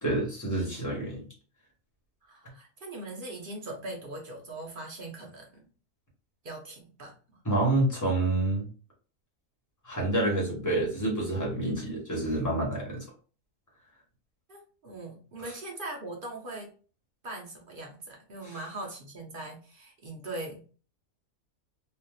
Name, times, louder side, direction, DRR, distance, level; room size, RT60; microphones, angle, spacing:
voice 1, 0.0-1.2 7.4-8.7 9.8-13.0 18.4-18.5, right 2 dB, 15° left, -3 dB, 1.1 m, -28 dB
voice 2, 2.2-5.7 6.4-7.4 14.5-16.7 17.2-20.7, right 2 dB, 50° right, 0 dB, 0.7 m, -41 dB
3.4 x 2.5 x 2.3 m, 0.38 s
omnidirectional pair, 1.5 m